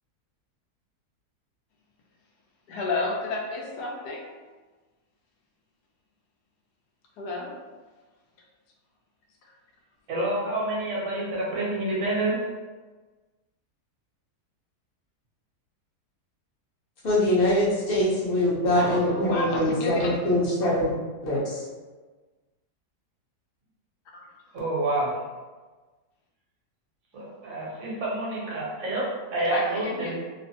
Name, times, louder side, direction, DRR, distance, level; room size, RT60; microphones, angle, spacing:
voice 1, 2.7-4.3 7.2-7.5 18.8-20.1 24.1-24.3 29.5-30.1, left 2 dB, 80° left, -1 dB, 1.1 m, -31 dB
voice 2, 10.1-12.4 24.5-25.2 27.1-30.2, right 2 dB, 60° right, -4 dB, 1.2 m, -28 dB
voice 3, 17.0-20.9 21.2-21.6, left 1 dB, 45° left, -6 dB, 0.8 m, -23 dB
3.1 x 2.1 x 2.7 m, 1.3 s
omnidirectional pair, 1.7 m